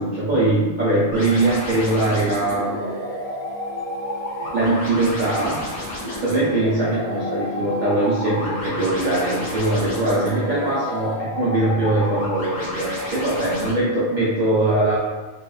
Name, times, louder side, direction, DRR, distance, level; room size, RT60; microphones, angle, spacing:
voice 1, 0.0-2.9 4.5-5.6 6.1-15.0, right 2 dB, 50° right, -8 dB, 0.7 m, -21 dB
sound 1, 1.1-13.7, left 1 dB, 70° left, 1.6 m, -31 dB
sound 2, 2.4-11.1, equal, 70° right, 1.5 m, -35 dB
4.7 x 2.5 x 2.3 m, 1.2 s
omnidirectional pair, 1.2 m